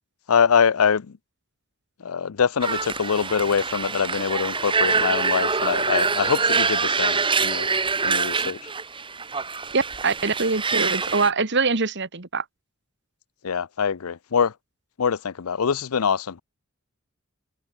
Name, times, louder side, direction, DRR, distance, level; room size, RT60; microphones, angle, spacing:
voice 1, 0.3-1.2 2.0-7.7 8.0-8.6 13.4-14.5 15.0-16.4, left 6 dB, 85° left, 0.6 m, -24 dB
sound 1, 2.6-11.3, right 4 dB, 25° right, 1.9 m, -25 dB
voice 2, 9.7-12.4, right 4 dB, 55° right, 1.7 m, -23 dB
head